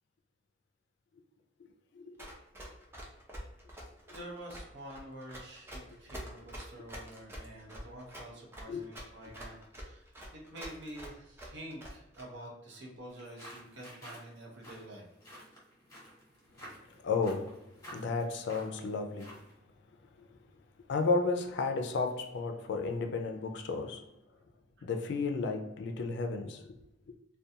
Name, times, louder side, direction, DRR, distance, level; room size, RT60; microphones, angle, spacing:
voice 1, 1.9-2.3 8.7-8.9 16.9-19.5 20.2-20.4 20.9-24.1 24.8-26.8, left 4 dB, 65° left, 0.4 m, -33 dB
Run, 2.2-12.2, equal, 15° right, 0.5 m, -46 dB
voice 2, 4.1-10.0 10.3-15.1, right 1 dB, 65° right, 0.8 m, -48 dB
sound 1, 13.1-19.6, equal, 20° left, 1.0 m, -52 dB
2.4 x 2.2 x 2.7 m
head